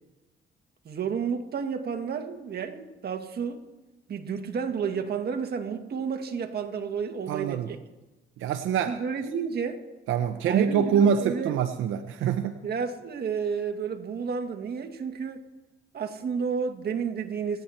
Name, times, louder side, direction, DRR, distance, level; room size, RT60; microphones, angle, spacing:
voice 1, 0.9-3.6 4.1-7.8 8.9-9.8 10.5-11.6 12.6-15.4 15.9-17.6, right 6 dB, 50° right, 1.9 m, -31 dB
voice 2, 7.3-7.7 8.4-9.0 10.1-12.6, right 7 dB, 85° right, 0.9 m, -25 dB
28.5 x 9.5 x 4.3 m
cardioid pair, 90°, 20 cm